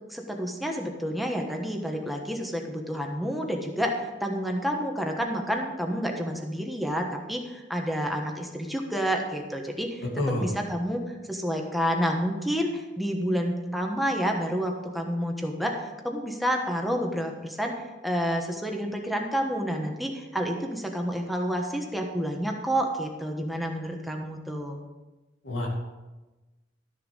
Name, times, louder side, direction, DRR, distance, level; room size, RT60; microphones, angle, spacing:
voice 1, 0.1-10.1 10.4-11.0 11.3-17.7 18.0-24.8, equal, ahead, 1 dB, 1.2 m, -29 dB
voice 2, 10.2-10.5 25.4-25.7, left 1 dB, 90° left, -2 dB, 2.3 m, -28 dB
13.0 x 6.7 x 5.3 m, 1.1 s
head